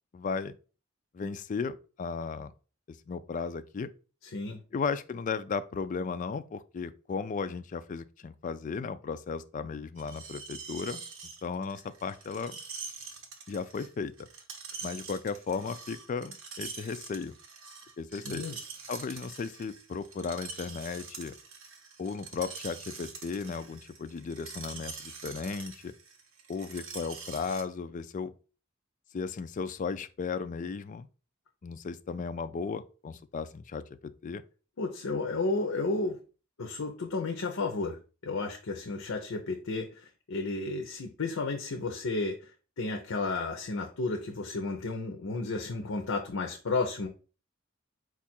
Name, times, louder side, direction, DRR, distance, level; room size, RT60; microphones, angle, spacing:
voice 1, 0.1-0.5 1.1-2.5 2.9-3.9 4.7-11.0 11.4-12.6 13.5-14.3 14.8-17.3 18.0-18.4 18.9-21.3 22.0-25.9 26.5-28.3 29.1-31.1 31.6-34.4, left 5 dB, 40° left, 0.3 m, -35 dB
Screech, 10.0-27.6, right 5 dB, 70° right, 0.8 m, -45 dB
voice 2, 18.1-18.6 34.8-36.2 36.6-42.5 42.8-47.1, left 3 dB, 80° left, 0.6 m, -32 dB
4.5 x 2.4 x 4.2 m
head